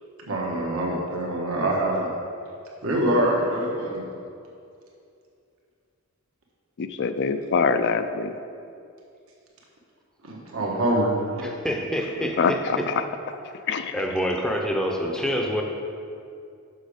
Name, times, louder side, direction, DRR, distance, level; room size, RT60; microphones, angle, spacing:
voice 1, 0.3-2.1 2.8-4.0 10.2-11.5, right 1 dB, 65° right, -2 dB, 1.3 m, -25 dB
voice 2, 6.8-8.3 12.2-13.0 13.7-14.3, left 5 dB, 50° left, 9 dB, 0.4 m, -25 dB
voice 3, 11.4-12.8 13.9-15.6, equal, 5° left, 1 dB, 0.6 m, -27 dB
6.4 x 6.2 x 5.0 m, 2.5 s
head